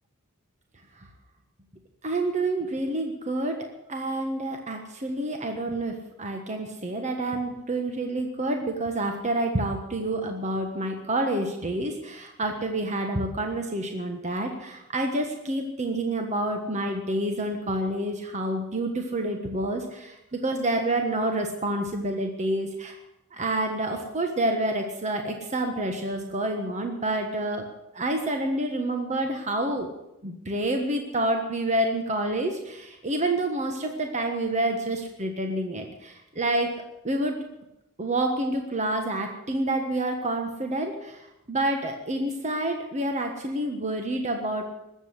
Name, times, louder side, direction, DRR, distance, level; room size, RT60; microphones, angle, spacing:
voice 1, 2.0-3.6 3.9-22.9 23.3-27.6 27.9-29.9 30.2-36.7 37.0-37.4 38.0-44.6, right 1 dB, 35° right, 3 dB, 1.4 m, -28 dB
20.5 x 8.1 x 8.1 m, 0.89 s
head